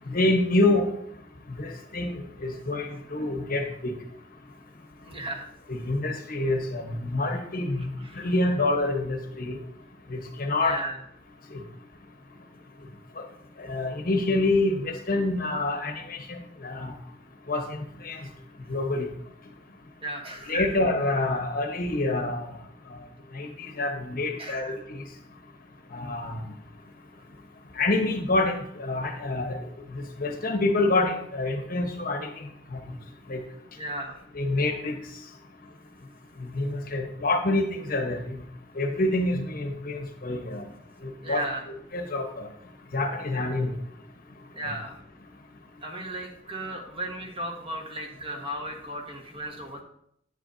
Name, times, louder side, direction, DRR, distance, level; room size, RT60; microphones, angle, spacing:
voice 1, 0.1-0.9 1.6-2.1 2.4-3.9 5.7-7.9 8.2-9.6 10.1-10.8 13.6-16.9 17.5-17.6 18.0-18.2 18.7-19.1 20.5-22.5 23.3-25.0 25.9-26.4 27.8-29.6 29.9-32.3 32.7-32.8 33.3-33.4 34.3-34.9 36.4-38.4 38.8-40.6 41.3-41.4 41.9-42.5 42.9-43.7 44.6-44.8, left 2 dB, 50° left, 4 dB, 1.1 m, -27 dB
voice 2, 5.0-5.5 7.8-8.3 10.6-11.0 18.2-18.3 20.0-20.7 24.4-24.8 33.8-34.2 41.2-41.6 44.5-45.0 45.8-49.8, right 1 dB, 30° right, 1 dB, 1.4 m, -35 dB
10.0 x 8.2 x 2.7 m, 0.72 s
head